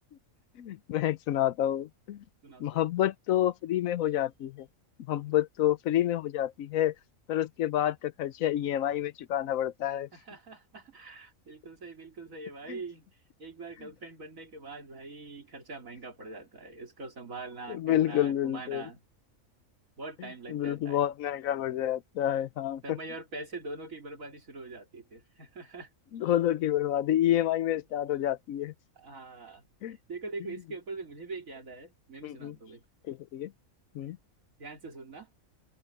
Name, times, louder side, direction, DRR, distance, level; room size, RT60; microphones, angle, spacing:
voice 1, 0.6-2.2 2.6-4.7 5.1-6.9 7.3-10.1 12.7-12.8 17.7-18.9 20.5-23.0 26.1-28.7 29.8-30.0 32.2-32.6 33.1-33.5 33.9-34.2, left 12 dB, 80° left, 1.1 m, -29 dB
voice 2, 2.4-2.9 5.1-5.3 10.1-13.1 13.4-19.0 20.0-21.0 21.6-21.8 22.8-25.9 29.0-29.6 30.1-32.8 34.6-35.3, right 3 dB, 75° right, 3.4 m, -43 dB
open air
omnidirectional pair, 1.4 m